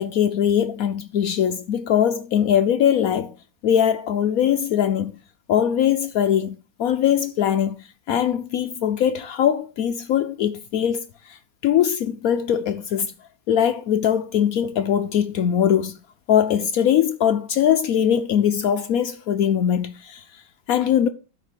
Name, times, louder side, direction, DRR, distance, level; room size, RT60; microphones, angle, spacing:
voice 1, 0.0-3.3 3.6-5.1 5.5-7.8 8.1-13.1 13.5-16.0 16.3-20.2 20.7-21.1, left 9 dB, 80° left, 0.7 m, -21 dB
12.5 x 4.9 x 5.0 m
omnidirectional pair, 2.1 m